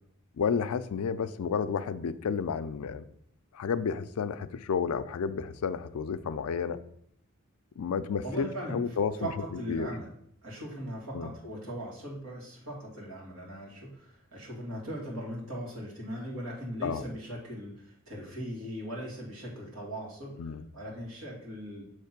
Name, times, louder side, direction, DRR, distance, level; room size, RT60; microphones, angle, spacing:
voice 1, 0.4-3.0 3.5-6.8 7.8-9.3 9.7-9.9 11.1-11.3 16.8-17.0 20.4-20.6, left 6 dB, 85° left, 13 dB, 0.4 m, -31 dB
voice 2, 8.2-10.1 10.4-20.4 20.7-21.9, equal, 80° right, -3 dB, 2.2 m, -39 dB
6.5 x 3.1 x 5.8 m, 0.71 s
head